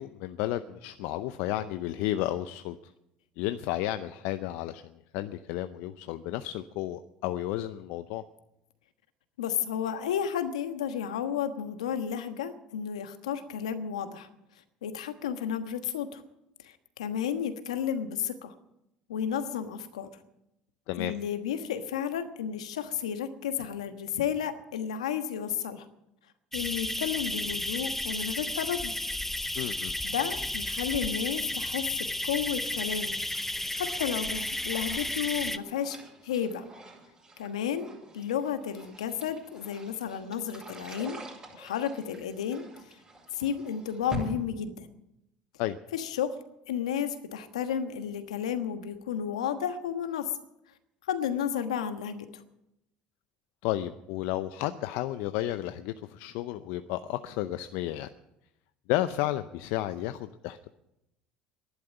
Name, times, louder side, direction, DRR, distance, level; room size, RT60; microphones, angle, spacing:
voice 1, 0.0-2.8 3.4-4.8 5.1-8.2 20.9-21.1 29.5-29.9 45.6-45.8 53.6-58.1 58.9-60.7, left 14 dB, 70° left, 11 dB, 0.6 m, -32 dB
voice 2, 9.4-14.3 14.8-16.2 16.6-18.5 19.1-20.1 21.0-25.8 26.5-28.9 30.0-33.2 33.7-36.0 36.2-36.6 37.4-41.2 41.5-42.6 43.3-44.9 45.9-46.3 46.7-50.3 51.1-52.4, left 8 dB, 90° left, 9 dB, 1.3 m, -32 dB
sound 1, 26.5-35.6, left 1 dB, 10° left, 0.9 m, -33 dB
sound 2, 33.8-44.3, right 1 dB, 25° right, 7.6 m, -46 dB
12.0 x 11.0 x 9.9 m, 0.86 s
hypercardioid pair, 75°, 3 cm